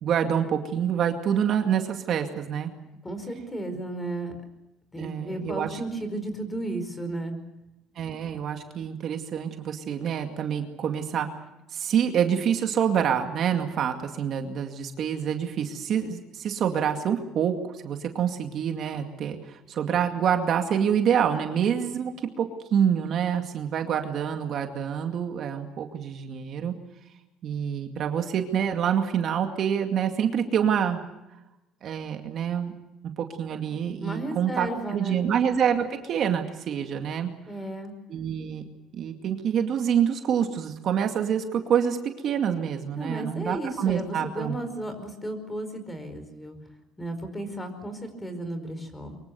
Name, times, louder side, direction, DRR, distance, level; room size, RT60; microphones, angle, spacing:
voice 1, 0.0-2.7 5.0-5.8 8.0-11.3 11.7-26.7 27.4-31.0 31.8-32.7 33.2-37.3 38.1-38.7 38.9-42.0 42.2-44.6, right 8 dB, 50° right, 5 dB, 2.3 m, -26 dB
voice 2, 3.0-4.3 4.9-7.4 34.0-35.2 37.5-37.9 43.0-46.6 47.0-49.2, right 1 dB, 10° left, 9 dB, 4.9 m, -34 dB
24.5 x 23.5 x 6.9 m, 0.96 s
cardioid pair, 130°, 0 cm